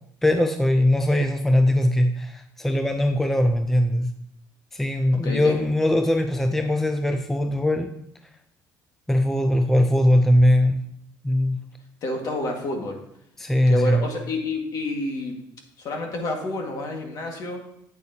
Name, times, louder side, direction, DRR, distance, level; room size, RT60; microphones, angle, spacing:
voice 1, 0.2-4.1 4.7-7.9 9.1-10.8 11.2-11.6 13.4-14.1, left 1 dB, 5° left, 6 dB, 0.4 m, -20 dB
voice 2, 5.1-5.6 12.0-13.0 13.7-15.4 15.8-17.6, left 2 dB, 50° left, 2 dB, 1.8 m, -29 dB
8.4 x 8.2 x 2.8 m, 0.76 s
cardioid pair, 130°, 8 cm